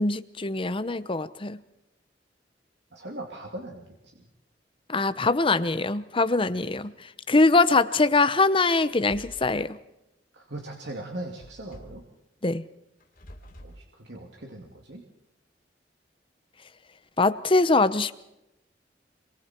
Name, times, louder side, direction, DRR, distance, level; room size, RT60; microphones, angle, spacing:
voice 1, 0.0-1.6 4.9-9.8 12.4-12.7 17.2-18.1, left 3 dB, 30° left, 13 dB, 0.9 m, -23 dB
voice 2, 2.9-3.8 10.3-12.0 13.6-15.0, right 1 dB, 70° right, 1 dB, 2.7 m, -39 dB
sound 1, 8.8-9.6 11.4-12.1 13.0-13.8, equal, 50° left, 2.9 m, -47 dB
26.5 x 23.5 x 4.5 m, 0.87 s
head